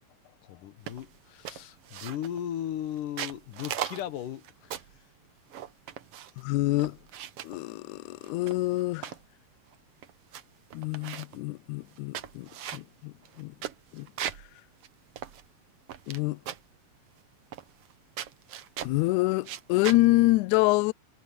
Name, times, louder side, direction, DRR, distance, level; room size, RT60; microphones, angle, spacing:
voice 1, 0.5-5.0, left 11 dB, 70° left, 2.6 m, -37 dB
sound 1, 0.9-1.1 1.5-2.4 3.0-5.0 5.5-6.4 6.8-7.6 8.2-9.2 9.7-9.8 10.0-10.4 10.7-11.4 11.9-14.5 14.8-14.9 15.2-16.2 16.5-16.8 17.5-17.9 18.2-19.0 19.4-20.0, right 10 dB, 65° right, 1.5 m, -38 dB
voice 2, 6.4-7.0 7.4-9.1 10.7-13.5 13.9-14.1 16.1-16.4 18.8-20.9, left 20 dB, 85° left, 1.7 m, -26 dB
omnidirectional pair, 4.0 m